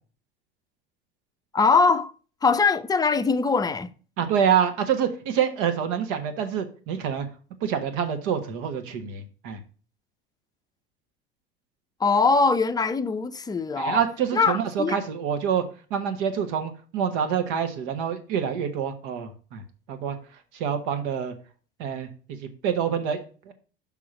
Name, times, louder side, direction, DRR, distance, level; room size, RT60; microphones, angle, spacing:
voice 1, 1.5-2.1 2.4-3.9 12.0-14.0 14.3-15.0, left 4 dB, 15° left, 0.5 m, -22 dB
voice 2, 4.2-7.3 7.6-9.6 13.8-15.6 15.9-19.6 19.9-20.2 20.5-21.3 21.8-23.5, right 8 dB, 65° right, 1.3 m, -26 dB
6.1 x 3.7 x 5.9 m
hypercardioid pair, 80°, 29 cm